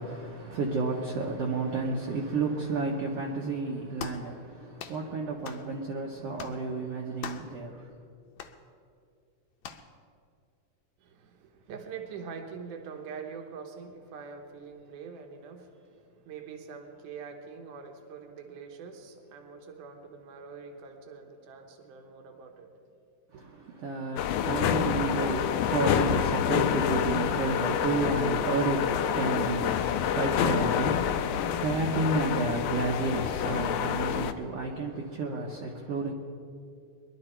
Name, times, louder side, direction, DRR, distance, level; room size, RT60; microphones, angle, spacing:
voice 1, 0.0-8.0 23.3-36.1, right 3 dB, 65° right, -1 dB, 1.7 m, -31 dB
sound 1, 4.0-4.3 4.8-5.0 5.4-5.7 6.4-6.6 7.2-7.5 8.4-8.6 9.6-9.9, left 8 dB, 70° left, 1.8 m, -41 dB
voice 2, 11.0-22.7 23.3-23.5, right 5 dB, 80° right, 4 dB, 2.7 m, -44 dB
sound 2, 24.2-34.3, left 9 dB, 85° left, 1.4 m, -28 dB
21.5 x 11.5 x 4.4 m, 2.4 s
omnidirectional pair, 3.6 m